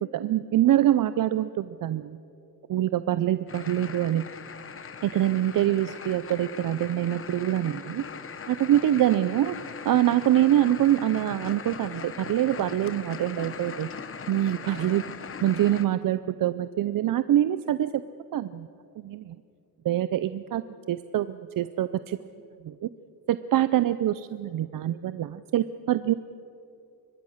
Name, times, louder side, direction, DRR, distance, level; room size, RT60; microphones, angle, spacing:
voice 1, 0.1-2.2 2.7-4.3 5.0-8.0 8.5-9.6 9.8-13.9 14.3-15.0 15.4-18.0 18.3-18.7 19.0-19.4 19.8-22.2 22.6-22.9 23.3-26.1, right 12 dB, 55° right, 13 dB, 0.6 m, -25 dB
sound 1, 3.5-15.8, left 6 dB, 35° left, 1.0 m, -40 dB
24.5 x 21.5 x 6.5 m, 2.6 s
wide cardioid pair, 160°, 39 cm